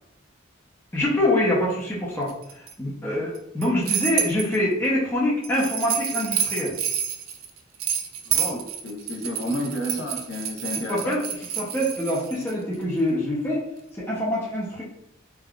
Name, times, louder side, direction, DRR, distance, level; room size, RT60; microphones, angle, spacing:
voice 1, 0.9-6.7 10.9-11.3 11.5-13.6 13.9-14.8, left 1 dB, 10° left, -6 dB, 0.5 m, -25 dB
sound 1, 2.3-2.7 3.4-4.6 5.4-12.5, right 9 dB, 90° right, 0.4 m, -29 dB
voice 2, 8.3-11.2, equal, 70° left, -1 dB, 0.7 m, -31 dB
3.4 x 2.3 x 2.3 m, 0.79 s
head